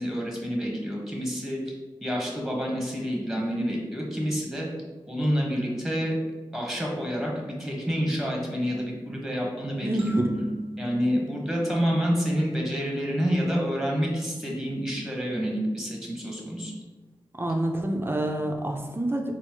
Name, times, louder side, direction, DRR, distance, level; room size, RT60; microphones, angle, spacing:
voice 1, 0.0-1.6 2.0-4.7 5.1-6.2 6.5-10.2 10.8-16.7, equal, 5° right, -2 dB, 1.3 m, -28 dB
voice 2, 9.8-10.3 17.4-19.2, right 1 dB, 25° right, 2 dB, 0.6 m, -27 dB
sound 1, 10.0-12.6, right 1 dB, 85° right, 0.7 m, -36 dB
4.3 x 2.0 x 4.5 m, 1.3 s
cardioid pair, 45°, 9 cm